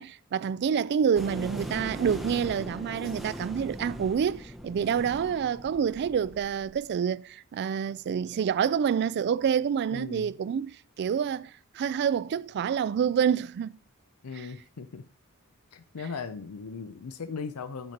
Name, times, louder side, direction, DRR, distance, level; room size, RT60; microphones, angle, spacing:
voice 1, 0.0-13.7 14.3-14.5, right 7 dB, 50° right, 0.3 m, -28 dB
sound 1, 1.2-6.8, equal, ahead, 0.6 m, -40 dB
voice 2, 9.9-10.3 14.2-15.0 15.7-17.9, left 5 dB, 75° left, 0.5 m, -38 dB
9.0 x 4.3 x 5.2 m
head